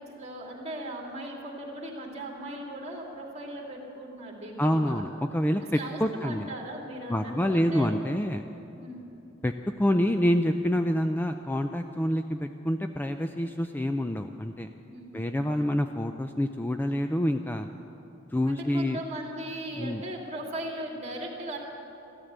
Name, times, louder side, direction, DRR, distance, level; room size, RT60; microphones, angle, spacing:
voice 1, 0.0-5.0 5.6-8.0 8.8-9.0 14.9-15.4 18.5-21.6, right 1 dB, 35° right, 0 dB, 2.5 m, -38 dB
voice 2, 4.6-6.5 7.1-8.4 9.4-14.7 15.1-17.7 18.3-19.0 19.8-20.0, equal, 10° left, 7 dB, 0.4 m, -27 dB
14.5 x 12.5 x 8.0 m, 2.9 s
head